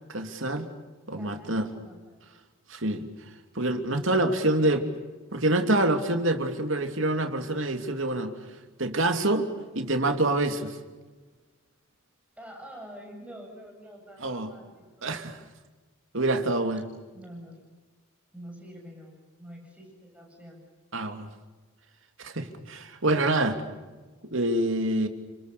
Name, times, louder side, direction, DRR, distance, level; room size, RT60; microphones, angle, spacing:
voice 1, 0.1-0.7 1.1-1.7 2.7-3.1 3.5-4.8 5.3-8.3 8.8-9.5 9.7-10.8 14.2-14.5 15.0-15.4 16.1-16.9 20.9-21.3 22.2-23.6 24.2-25.1, right 2 dB, 65° right, 6 dB, 3.0 m, -26 dB
voice 2, 1.1-2.2 4.4-4.9 12.4-15.1 17.1-17.7 18.3-20.6, equal, 5° right, 0 dB, 8.0 m, -46 dB
30.0 x 26.5 x 7.0 m, 1.3 s
head